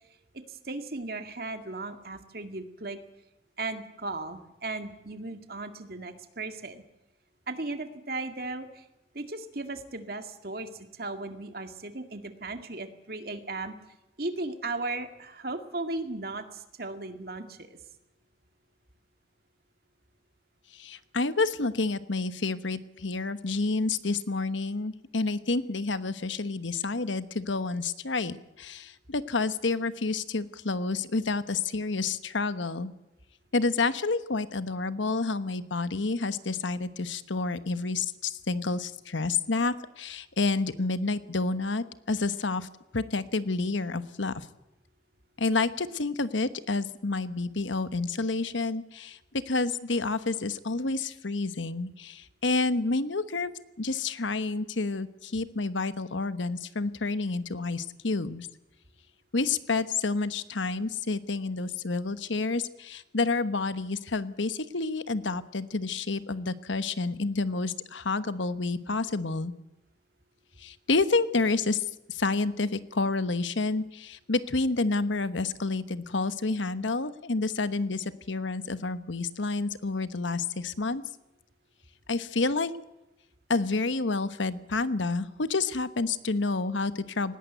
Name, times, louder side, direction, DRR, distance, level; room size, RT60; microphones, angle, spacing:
voice 1, 0.3-3.0 3.6-6.8 7.5-8.9 9.1-13.8 14.2-17.8, right 2 dB, 50° right, 7 dB, 2.1 m, -36 dB
voice 2, 20.7-32.9 33.5-42.7 42.9-44.5 45.4-49.2 49.5-53.5 53.8-58.5 59.3-69.5 70.6-81.0 82.1-82.7 83.5-87.4, left 3 dB, 80° left, 13 dB, 1.1 m, -29 dB
19.5 x 18.0 x 8.1 m, 0.94 s
head